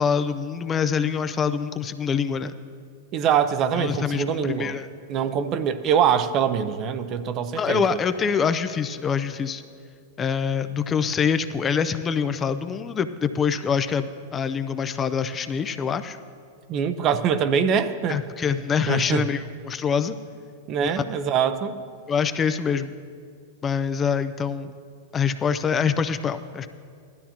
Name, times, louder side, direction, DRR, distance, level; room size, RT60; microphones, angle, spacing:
voice 1, 0.0-2.5 3.8-4.9 7.5-9.6 10.2-16.2 18.1-20.2 20.8-21.0 22.1-22.9 23.6-24.7 25.1-26.7, left 6 dB, 25° left, 10 dB, 0.4 m, -25 dB
voice 2, 3.1-4.7 5.1-8.0 16.7-18.2 18.9-19.2 20.7-21.8, right 7 dB, 40° right, 11 dB, 0.6 m, -23 dB
16.0 x 12.5 x 2.9 m, 2.2 s
hypercardioid pair, 110°, 0 cm